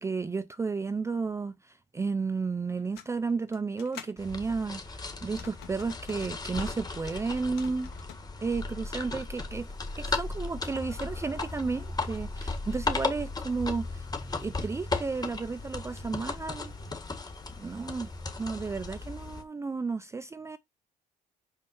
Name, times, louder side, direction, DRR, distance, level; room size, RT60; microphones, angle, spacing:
voice 1, 0.0-7.9 8.4-9.7 10.0-14.1 14.4-16.7 17.6-18.1 18.4-20.6, right 4 dB, 15° right, 0.5 m, -33 dB
sound 1, 2.7-4.2 5.2-6.8 7.3-8.3 9.5-19.4, left 9 dB, 80° left, 2.2 m, -54 dB
sound 2, 4.2-19.4, left 3 dB, 25° left, 1.6 m, -36 dB
5.6 x 5.4 x 5.3 m
cardioid pair, 110°, 17 cm